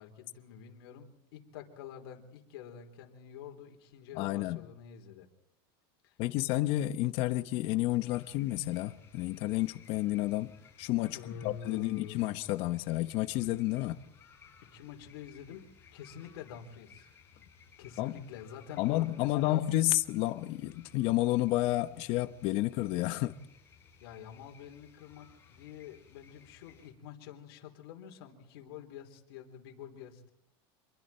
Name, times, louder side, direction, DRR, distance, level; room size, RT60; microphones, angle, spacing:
voice 1, 0.0-5.3 6.0-6.2 11.1-12.3 14.6-15.7 15.9-17.1 17.8-19.6 24.0-30.3, left 8 dB, 75° left, 4.0 m, -48 dB
voice 2, 4.1-4.6 6.2-10.5 10.8-14.0 18.0-18.1 18.8-23.4, left 16 dB, 50° left, 1.1 m, -30 dB
sound 1, 8.0-26.9, left 6 dB, 20° left, 6.6 m, -60 dB
27.5 x 22.0 x 4.4 m
supercardioid pair, 150°, 13 cm